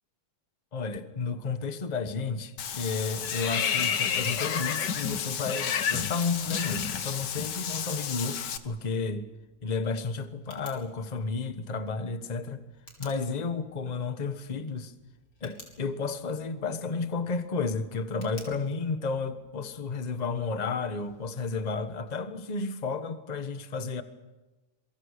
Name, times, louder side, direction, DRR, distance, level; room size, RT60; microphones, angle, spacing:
voice 1, 0.7-9.3 9.6-12.6 13.0-14.9 15.4-24.0, left 4 dB, 25° left, 1.0 m, -32 dB
Tick, 2.6-22.3, left 3 dB, 85° left, 5.4 m, -56 dB
Water / Bathtub (filling or washing), 2.6-8.6, left 7 dB, 55° left, 1.6 m, -30 dB
27.5 x 23.5 x 6.6 m
omnidirectional pair, 2.4 m